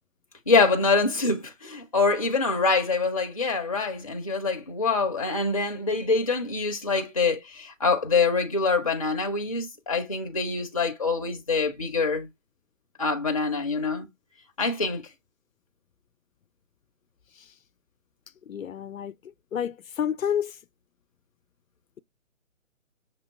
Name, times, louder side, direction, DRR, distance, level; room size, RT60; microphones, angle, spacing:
voice 1, 0.5-12.3 13.0-14.1 14.6-15.1, left 4 dB, 30° left, 0.5 m, -25 dB
voice 2, 18.5-19.1 19.5-20.5, left 9 dB, 80° left, 0.5 m, -29 dB
6.0 x 2.9 x 2.9 m
figure-of-eight pair, 145°, 40 cm